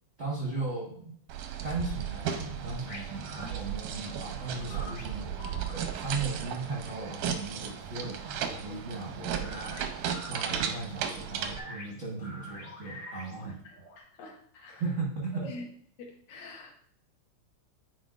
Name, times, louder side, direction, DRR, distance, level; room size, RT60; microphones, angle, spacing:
voice 1, 0.2-1.1 1.6-5.2 5.7-9.8 10.3-13.6 14.7-15.5, right 3 dB, 50° right, -4 dB, 0.9 m, -37 dB
sound 1, 1.3-11.6, right 8 dB, 90° right, 2.3 m, -35 dB
sound 2, 2.9-14.0, left 1 dB, 90° left, 3.5 m, -48 dB
voice 2, 13.4-14.9 15.4-15.7 16.0-16.7, left 2 dB, 75° left, 1 dB, 2.5 m, -46 dB
9.4 x 4.7 x 2.5 m, 0.63 s
omnidirectional pair, 3.5 m